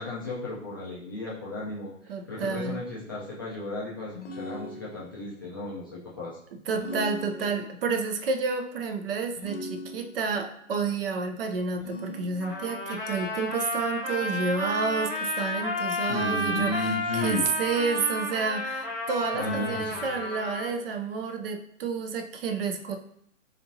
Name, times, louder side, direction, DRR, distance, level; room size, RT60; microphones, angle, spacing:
voice 1, 0.0-6.4 16.1-17.5 19.3-20.0, left 2 dB, 20° left, -9 dB, 0.3 m, -34 dB
voice 2, 2.1-2.8 6.5-23.0, right 4 dB, 45° right, 5 dB, 0.5 m, -30 dB
sound 1, 4.1-5.3 6.7-7.9 9.4-10.4 11.8-12.8, left 1 dB, 60° left, 0.8 m, -39 dB
Trumpet, 12.4-20.7, left 1 dB, 5° right, 1.1 m, -32 dB
4.1 x 2.8 x 2.6 m, 0.71 s
hypercardioid pair, 130°, 39 cm